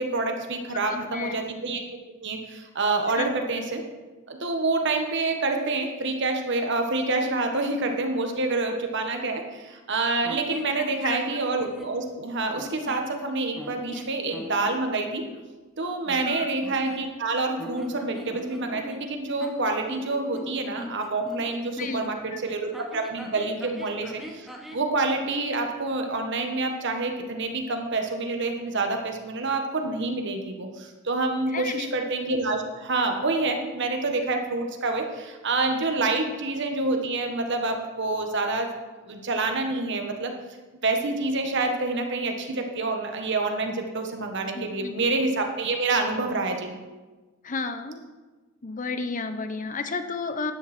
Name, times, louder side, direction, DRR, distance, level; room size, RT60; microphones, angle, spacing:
voice 1, 0.0-1.8 2.2-3.8 4.3-15.2 15.8-38.7 39.1-40.3 40.8-46.7, right 3 dB, 60° right, 4 dB, 1.6 m, -27 dB
voice 2, 0.9-1.4 3.2-3.3 11.0-11.2 16.1-16.5 21.8-22.4 31.5-31.9 44.5-44.9 47.4-48.0 48.6-50.5, left 4 dB, 40° left, 9 dB, 1.0 m, -32 dB
sound 1, 10.2-12.0 12.5-13.1 13.6-14.8 16.0-17.3 17.6-22.1 22.7-24.9, equal, ahead, 1.3 m, -41 dB
13.0 x 11.0 x 4.4 m, 1.2 s
head